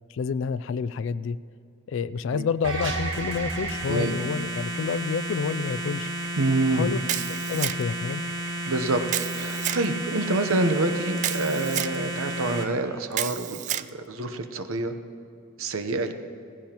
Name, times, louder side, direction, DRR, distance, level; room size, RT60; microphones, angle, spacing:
voice 1, 0.1-1.4 1.9-6.1 6.7-7.0 7.5-8.3, left 6 dB, 65° left, 14 dB, 0.3 m, -29 dB
sound 1, 2.6-12.6, right 1 dB, 65° right, 1.6 m, -32 dB
voice 2, 3.9-4.2 6.4-6.9 8.7-9.0 9.3-14.9 15.6-16.1, right 2 dB, 80° right, 7 dB, 0.9 m, -27 dB
Camera, 7.1-8.0 9.1-9.8 11.2-12.0 13.1-13.9, right 12 dB, 35° right, 0.3 m, -30 dB
17.0 x 15.5 x 2.9 m, 2.8 s
head